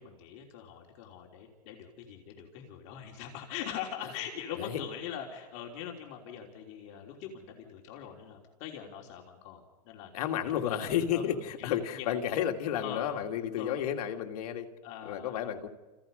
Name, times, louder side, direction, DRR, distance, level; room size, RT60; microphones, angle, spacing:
voice 1, 0.0-10.1 11.1-12.1 12.8-13.1 13.5-13.8 14.8-15.4, left 9 dB, 45° left, 1 dB, 3.3 m, -42 dB
voice 2, 10.1-14.7 15.0-15.7, left 9 dB, 65° left, 4 dB, 2.6 m, -32 dB
29.0 x 28.5 x 5.4 m, 1.2 s
supercardioid pair, 165°, 21 cm